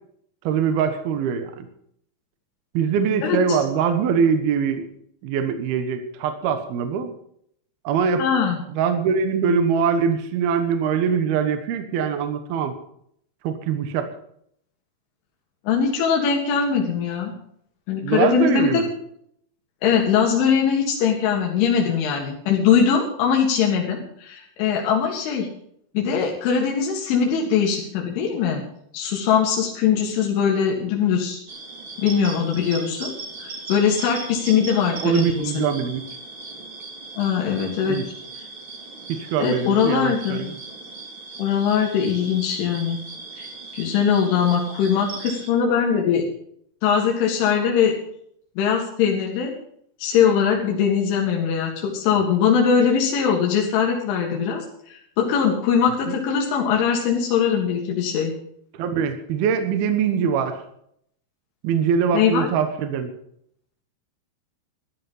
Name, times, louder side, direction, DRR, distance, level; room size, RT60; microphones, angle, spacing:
voice 1, 0.4-1.7 2.7-4.9 5.2-7.1 7.8-8.2 8.7-12.8 13.4-14.1 18.0-18.9 35.0-36.0 37.9-38.1 39.1-40.5 56.1-56.2 58.7-60.6 61.6-63.1, right 6 dB, 65° right, 8 dB, 2.7 m, -23 dB
voice 2, 3.2-3.6 8.2-8.6 15.7-17.3 17.9-18.8 19.8-25.5 25.9-28.6 28.9-31.4 32.0-33.1 33.4-35.7 37.2-38.0 39.4-40.4 41.4-43.0 43.4-43.5 43.7-46.2 46.8-47.9 48.6-49.5 50.0-58.3 62.1-62.5, left 7 dB, 90° left, -1 dB, 4.4 m, -21 dB
sound 1, 31.5-45.5, right 3 dB, 35° right, 2.4 m, -38 dB
14.0 x 12.5 x 5.6 m, 0.68 s
omnidirectional pair, 5.4 m